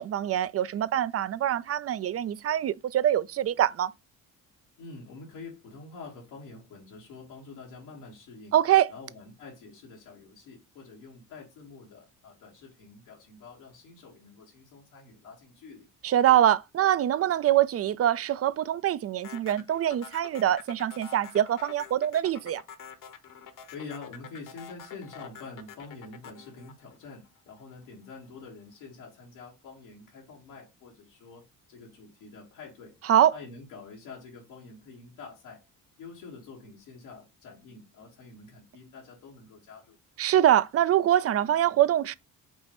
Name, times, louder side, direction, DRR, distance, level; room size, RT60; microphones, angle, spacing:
voice 1, 0.0-3.9 8.5-8.9 16.0-22.6 33.0-33.3 40.2-42.1, right 11 dB, 40° right, 0.4 m, -24 dB
voice 2, 4.8-8.5 8.9-15.9 23.7-33.0 33.3-35.6 36.0-40.0, left 4 dB, 90° left, 1.5 m, -46 dB
sound 1, 19.2-27.6, left 7 dB, 50° left, 0.9 m, -46 dB
5.3 x 3.1 x 2.9 m
hypercardioid pair, 55°, 41 cm